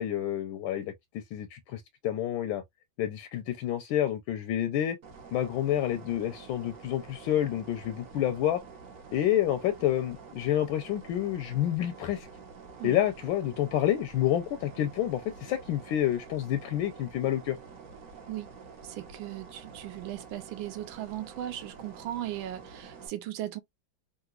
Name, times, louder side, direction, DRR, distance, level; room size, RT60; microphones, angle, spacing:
voice 1, 0.0-2.6 3.0-5.0 5.3-8.6 9.1-12.3 12.8-17.6, left 12 dB, 80° left, 1.3 m, -29 dB
sound 1, 5.0-23.1, right 5 dB, 50° right, 1.2 m, -48 dB
voice 2, 18.8-23.6, right 13 dB, 80° right, 1.4 m, -37 dB
3.8 x 2.5 x 2.3 m
omnidirectional pair, 2.2 m